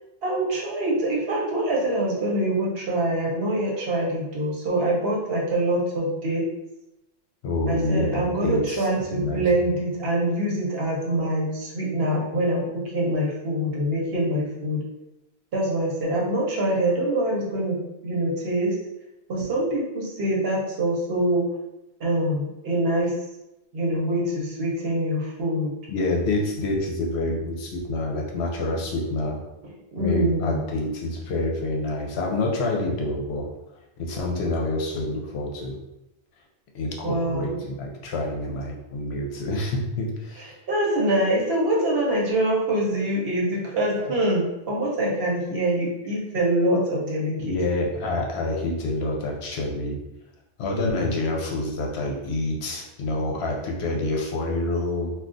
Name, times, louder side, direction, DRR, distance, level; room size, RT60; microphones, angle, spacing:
voice 1, 0.2-6.4 7.7-14.8 15.5-18.7 19.3-21.5 22.0-23.1 23.7-25.7 29.9-30.7 37.0-37.6 40.7-47.6, right 1 dB, 65° right, -3 dB, 1.0 m, -24 dB
voice 2, 7.4-9.6 25.9-29.4 30.0-33.5 34.0-35.8 36.7-40.6 47.4-50.0 50.6-55.1, left 2 dB, 70° left, 0 dB, 0.9 m, -27 dB
2.3 x 2.3 x 3.7 m, 0.92 s
omnidirectional pair, 1.1 m